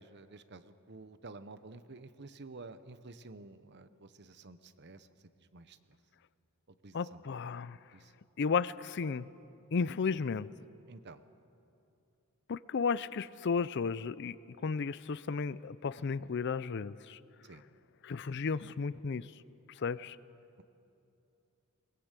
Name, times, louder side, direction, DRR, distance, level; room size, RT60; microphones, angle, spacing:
voice 1, 0.0-5.1 5.4-6.0 6.8-7.2 7.9-8.1 10.9-11.2 17.4-17.6, right 3 dB, 50° right, 12 dB, 0.9 m, -51 dB
voice 2, 6.9-7.8 8.4-9.2 9.7-10.5 12.5-14.4 14.6-17.2 18.0-19.3 19.8-20.2, left 5 dB, 50° left, 18 dB, 0.4 m, -33 dB
21.5 x 20.0 x 8.2 m, 2.8 s
head